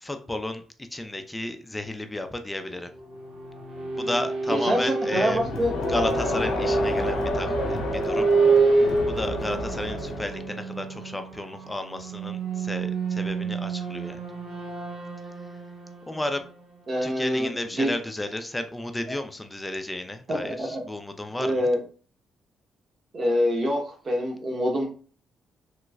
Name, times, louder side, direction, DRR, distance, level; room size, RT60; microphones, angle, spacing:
voice 1, 0.0-2.9 3.9-5.4 5.9-8.3 8.5-14.2 15.2-15.3 16.1-16.4 17.0-21.7, left 1 dB, 15° left, 7 dB, 0.4 m, -33 dB
sound 1, 2.8-17.5, right 3 dB, 80° right, 0.8 m, -28 dB
voice 2, 4.5-5.7 16.9-17.5 17.7-17.9 20.3-20.8 21.4-21.8 23.1-24.8, equal, 40° right, 0 dB, 1.0 m, -25 dB
Crowd, 5.3-10.5, left 2 dB, 75° left, 0.5 m, -30 dB
3.1 x 2.9 x 2.3 m, 0.40 s
cardioid pair, 90°, 0 cm